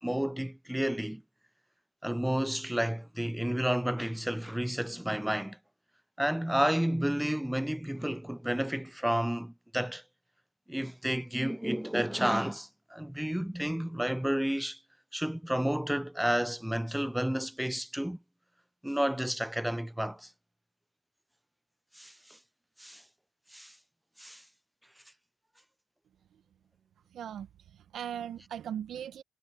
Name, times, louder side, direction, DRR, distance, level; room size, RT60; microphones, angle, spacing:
voice 1, 0.0-1.2 2.0-5.6 6.2-10.0 10.7-14.8 15.1-18.2 18.8-20.3 22.0-22.1 22.8-23.0 23.5-23.7 24.2-24.4, equal, 5° right, 0.3 m, -31 dB
voice 2, 27.1-29.2, right 9 dB, 80° right, 1.0 m, -39 dB
supercardioid pair, 45°, 0 cm